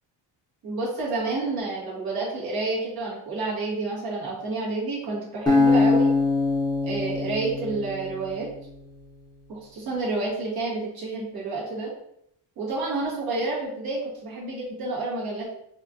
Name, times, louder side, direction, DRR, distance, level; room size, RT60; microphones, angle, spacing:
voice 1, 0.6-6.1 6.8-8.5 9.5-11.9 12.6-15.5, right 3 dB, 55° right, -5 dB, 1.5 m, -29 dB
Acoustic guitar, 5.5-8.7, left 3 dB, 10° left, 0.7 m, -23 dB
4.4 x 2.4 x 2.6 m, 0.74 s
cardioid pair, 160°, 44 cm